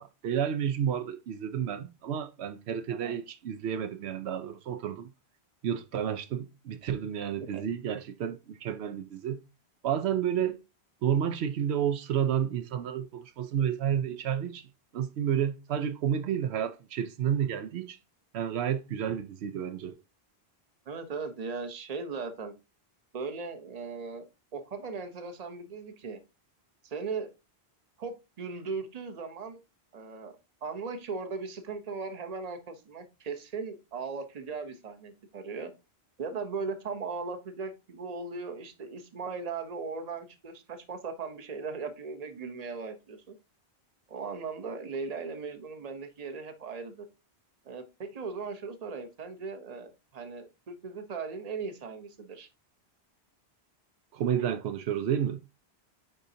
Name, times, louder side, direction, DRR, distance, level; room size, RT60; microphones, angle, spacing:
voice 1, 0.0-5.1 5.6-9.4 9.8-10.6 11.0-18.0 18.3-20.0 54.1-55.4, right 9 dB, 90° right, 0.9 m, -31 dB
voice 2, 2.9-3.2 7.4-7.6 20.9-22.5 23.1-24.2 24.5-26.2 26.8-27.3 28.0-29.6 29.9-30.3 30.6-35.7 36.2-43.4 44.1-47.1 47.7-52.5, right 4 dB, 40° right, 0.9 m, -38 dB
9.2 x 4.0 x 2.7 m
omnidirectional pair, 1.1 m